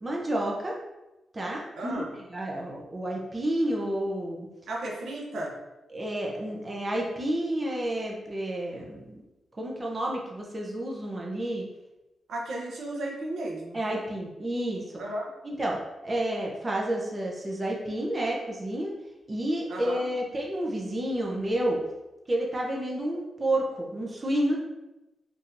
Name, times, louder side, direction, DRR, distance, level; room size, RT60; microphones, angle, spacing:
voice 1, 0.0-0.8 1.3-4.5 5.9-9.1 9.6-11.6 13.7-15.0 15.4-18.9 19.3-21.8 22.3-24.6, right 1 dB, 25° right, -2 dB, 0.6 m, -30 dB
voice 2, 1.8-2.1 4.7-5.5 12.3-13.8 15.0-15.3 19.7-20.1, right 1 dB, 80° right, -2 dB, 0.8 m, -34 dB
4.2 x 2.7 x 2.5 m, 1.0 s
cardioid pair, 100°, 0 cm